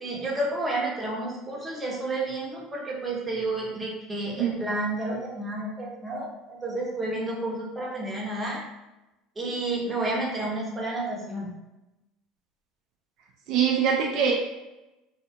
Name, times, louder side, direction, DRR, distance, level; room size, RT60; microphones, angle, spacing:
voice 1, 0.0-8.6 9.4-11.5, right 2 dB, 20° right, -4 dB, 0.8 m, -31 dB
voice 2, 13.5-14.3, right 7 dB, 65° right, 0 dB, 0.4 m, -23 dB
2.6 x 2.5 x 2.2 m, 0.99 s
supercardioid pair, 90°, 0 cm